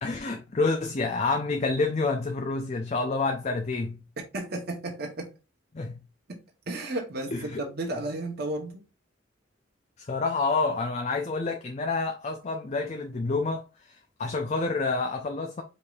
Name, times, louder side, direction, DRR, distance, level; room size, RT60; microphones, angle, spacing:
voice 1, 0.0-4.0 5.7-6.0 7.3-7.6 10.0-15.6, left 3 dB, 35° left, 0.5 m, -28 dB
voice 2, 4.3-5.3 6.3-6.4 6.7-8.8, right 2 dB, 55° right, 0.9 m, -33 dB
5.0 x 4.3 x 2.4 m
head